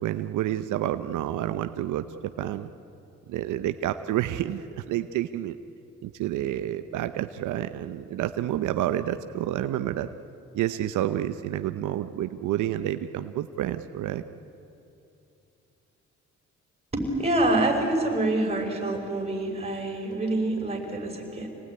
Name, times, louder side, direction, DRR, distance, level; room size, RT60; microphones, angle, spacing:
voice 1, 0.0-2.1 2.4-2.7 3.3-5.6 6.0-10.1 10.5-14.2, right 12 dB, 80° right, 10 dB, 0.8 m, -29 dB
voice 2, 16.9-21.5, right 2 dB, 20° right, 2 dB, 5.8 m, -26 dB
26.0 x 19.0 x 9.7 m, 2.7 s
cardioid pair, 90°, 30 cm